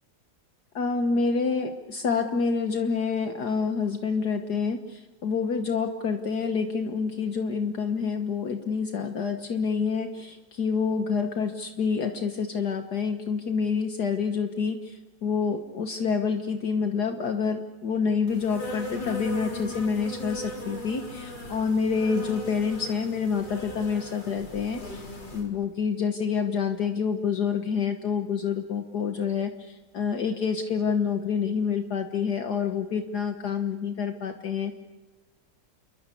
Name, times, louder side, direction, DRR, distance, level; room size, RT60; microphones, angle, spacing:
voice 1, 0.8-25.0 25.3-34.7, left 5 dB, 65° left, 5 dB, 1.8 m, -27 dB
Insect, 18.3-25.5, left 1 dB, 90° left, 5.1 m, -38 dB
29.0 x 23.0 x 8.4 m, 1.1 s
omnidirectional pair, 1.9 m